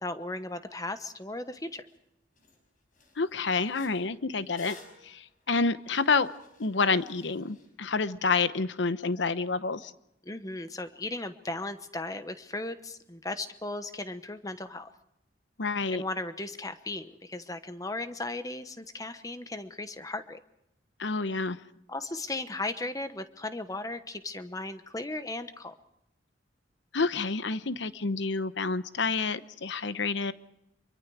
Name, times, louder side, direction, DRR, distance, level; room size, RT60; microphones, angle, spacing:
voice 1, 0.0-1.8 10.2-14.9 15.9-20.4 21.9-25.7, left 2 dB, 20° left, 10 dB, 1.0 m, -36 dB
sound 1, 1.9-2.0 2.4-2.6 2.9-7.7, left 2 dB, 45° left, 5.3 m, -55 dB
voice 2, 3.2-4.8 5.0-6.3 6.6-9.9 15.6-16.0 21.0-21.6 26.9-30.3, left 4 dB, 70° left, 13 dB, 0.9 m, -28 dB
25.0 x 23.5 x 4.8 m, 0.83 s
head